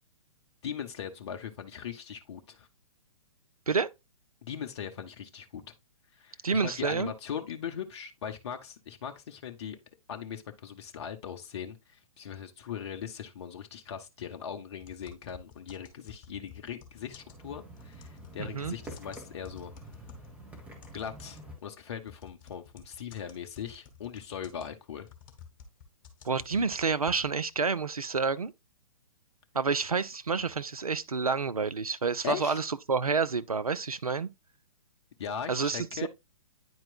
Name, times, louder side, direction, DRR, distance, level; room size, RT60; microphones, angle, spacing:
voice 1, 0.6-2.7 4.4-5.6 6.1-9.8 10.1-19.7 20.9-25.1 32.2-32.6 35.2-36.1, left 8 dB, 50° left, 0.8 m, -40 dB
voice 2, 6.4-7.1 18.4-18.7 26.2-28.5 29.5-34.3 35.5-36.1, right 5 dB, 85° right, 0.5 m, -29 dB
sound 1, 14.8-20.4 20.8-27.5, left 7 dB, 35° left, 1.5 m, -51 dB
sound 2, 16.9-21.5, equal, 10° right, 1.5 m, -48 dB
9.4 x 4.5 x 2.4 m
figure-of-eight pair, 120°, 18 cm